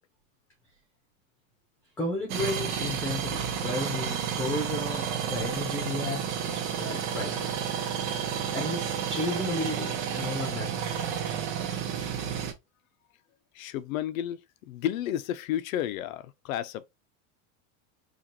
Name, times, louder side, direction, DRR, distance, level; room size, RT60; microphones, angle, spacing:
voice 1, 2.0-7.8 8.5-11.1, left 2 dB, 5° left, 0.9 m, -33 dB
sound 1, 2.3-12.5, right 8 dB, 60° right, 1.2 m, -31 dB
voice 2, 13.5-16.9, left 11 dB, 80° left, 0.7 m, -32 dB
5.0 x 2.5 x 2.8 m
supercardioid pair, 175°, 41 cm